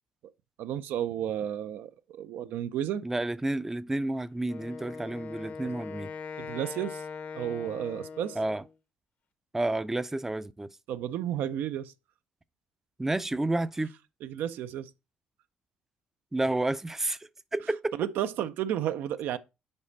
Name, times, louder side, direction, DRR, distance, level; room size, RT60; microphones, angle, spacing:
voice 1, 0.6-3.0 5.6-5.7 6.4-7.0 7.3-8.4 10.9-11.9 14.2-14.9 18.0-19.4, right 10 dB, 85° right, 0.4 m, -32 dB
voice 2, 3.0-6.1 8.4-8.6 9.5-10.7 13.0-13.9 16.3-17.2 17.5-17.9, right 2 dB, 10° right, 0.4 m, -30 dB
Wind instrument woodwind instrument, 4.5-8.7, left 5 dB, 60° left, 0.7 m, -41 dB
5.3 x 5.0 x 4.0 m
cardioid pair, 90°, 3 cm